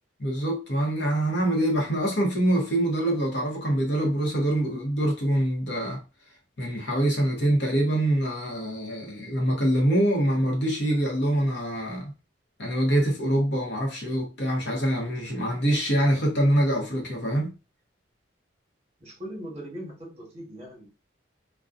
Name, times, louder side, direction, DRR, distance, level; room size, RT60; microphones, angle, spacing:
voice 1, 0.2-6.0 6.6-12.1 12.6-17.5, right 1 dB, 60° left, 0.8 m, -25 dB
voice 2, 19.0-20.9, equal, 35° right, 1.1 m, -39 dB
2.5 x 2.2 x 2.5 m
head